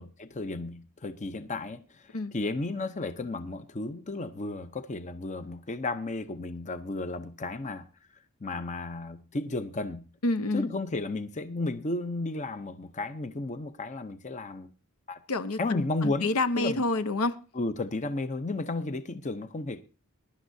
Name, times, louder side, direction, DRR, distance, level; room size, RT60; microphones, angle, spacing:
voice 1, 0.0-7.9 8.4-10.0 10.5-14.7 15.1-15.2 15.6-16.8 17.5-19.8, left 2 dB, 30° left, 0.6 m, -33 dB
voice 2, 10.2-10.7 15.3-17.4, left 2 dB, 70° left, 0.8 m, -28 dB
22.0 x 11.5 x 2.7 m
head